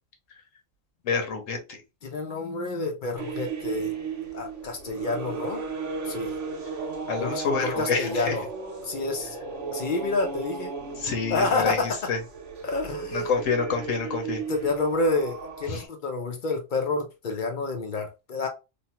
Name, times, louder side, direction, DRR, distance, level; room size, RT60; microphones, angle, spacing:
voice 1, 1.0-1.6 7.1-8.3 11.0-11.8 12.1-12.2 13.1-14.4 15.7-15.8, left 5 dB, 75° left, 1.2 m, -27 dB
voice 2, 2.0-3.9 4.3-5.6 6.1-6.3 7.2-8.5 8.8-9.4 9.7-10.7 11.3-12.0 12.6-13.3 14.5-18.5, left 3 dB, 55° left, 0.6 m, -29 dB
sound 1, 3.2-15.9, right 5 dB, 65° right, 1.1 m, -35 dB
3.0 x 2.2 x 2.8 m
omnidirectional pair, 1.3 m